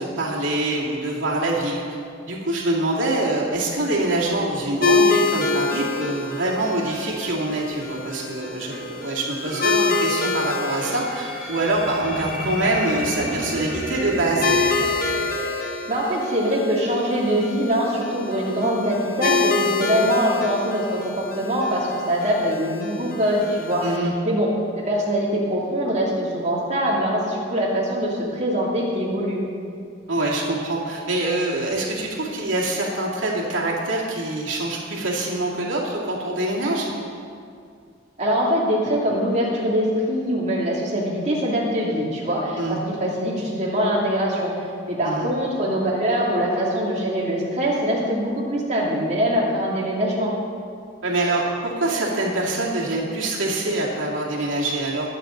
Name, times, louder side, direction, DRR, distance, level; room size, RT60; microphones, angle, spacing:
voice 1, 0.0-1.8 2.3-14.5 23.8-24.1 30.1-36.9 42.6-42.8 45.0-45.3 51.0-55.1, right 2 dB, 80° right, -4 dB, 2.4 m, -25 dB
sound 1, 4.8-24.0, left 3 dB, 50° left, 1.0 m, -27 dB
sound 2, 9.4-16.5, right 1 dB, 5° right, 3.8 m, -32 dB
voice 2, 15.9-24.0 24.2-24.5 24.8-29.4 38.2-44.5 44.9-50.3, equal, 35° right, -5 dB, 2.7 m, -23 dB
21.5 x 9.0 x 3.9 m, 2.3 s
head